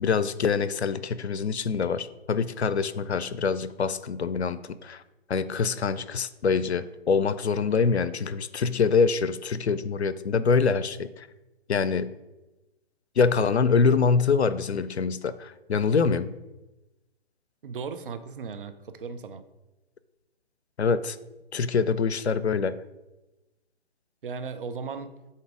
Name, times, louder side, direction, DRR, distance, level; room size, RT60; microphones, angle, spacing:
voice 1, 0.0-5.0 5.3-11.3 11.7-12.1 13.2-16.3 20.8-21.2 21.5-22.8, left 5 dB, 90° left, 15 dB, 0.5 m, -25 dB
voice 2, 17.6-19.4 24.2-25.1, right 5 dB, 55° right, 10 dB, 0.6 m, -36 dB
8.1 x 2.9 x 4.9 m, 1.0 s
figure-of-eight pair, 140°, 32 cm